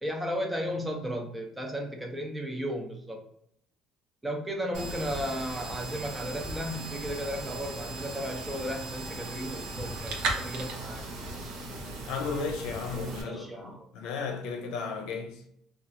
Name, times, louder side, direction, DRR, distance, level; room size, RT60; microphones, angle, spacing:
voice 1, 0.0-3.2 4.2-11.0 13.2-13.9, equal, 10° right, 0.6 m, -34 dB
sound 1, 4.7-13.2, right 2 dB, 75° right, 0.7 m, -37 dB
voice 2, 12.1-15.4, left 5 dB, 85° left, 0.6 m, -34 dB
2.9 x 2.4 x 2.6 m
cardioid pair, 135°, 0 cm